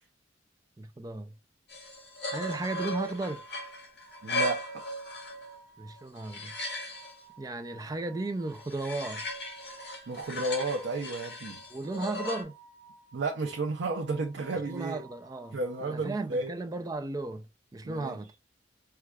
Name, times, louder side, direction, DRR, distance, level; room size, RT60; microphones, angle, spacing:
voice 1, 0.8-1.3 2.3-3.4 5.8-6.5 7.4-9.2 11.7-12.5 14.7-17.5 17.7-18.3, right 2 dB, 20° right, 0.3 m, -35 dB
sound 1, 1.7-5.6 6.0-7.1 8.5-12.4, left 1 dB, 60° left, 1.5 m, -37 dB
sound 2, 4.0-16.2, right 4 dB, 40° left, 1.8 m, -55 dB
voice 2, 4.2-4.8 10.1-11.6 13.1-15.0 15.5-16.5 17.8-18.2, right 3 dB, 80° right, 0.6 m, -32 dB
4.6 x 2.3 x 2.3 m
head